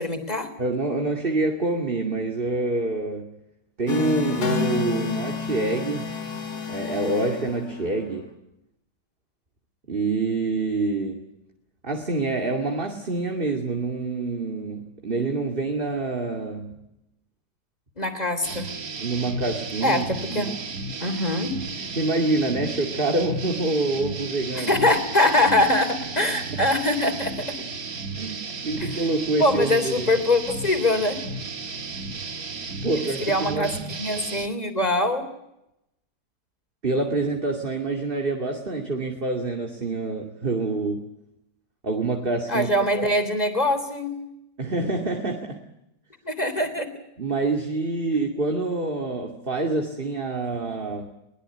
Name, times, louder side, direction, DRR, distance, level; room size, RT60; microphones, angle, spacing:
voice 1, 0.0-0.5 18.0-18.7 19.8-20.5 21.0-21.6 24.5-27.6 28.8-29.0 29.4-31.3 33.2-33.7 34.0-35.3 42.5-44.2 46.2-46.9, left 1 dB, 20° left, 9 dB, 3.5 m, -23 dB
voice 2, 0.6-3.3 3.8-6.1 6.7-8.3 9.9-11.3 11.8-16.8 19.0-20.0 20.3-20.6 21.8-24.7 28.2-30.1 32.8-33.7 36.8-41.1 41.8-43.1 44.6-45.6 47.2-51.1, right 3 dB, 30° right, 3 dB, 2.7 m, -26 dB
sound 1, 3.9-8.1, left 5 dB, 60° left, 3.3 m, -29 dB
sound 2, 18.4-34.5, right 3 dB, 50° right, 2.2 m, -34 dB
23.0 x 20.5 x 9.7 m, 0.84 s
omnidirectional pair, 2.0 m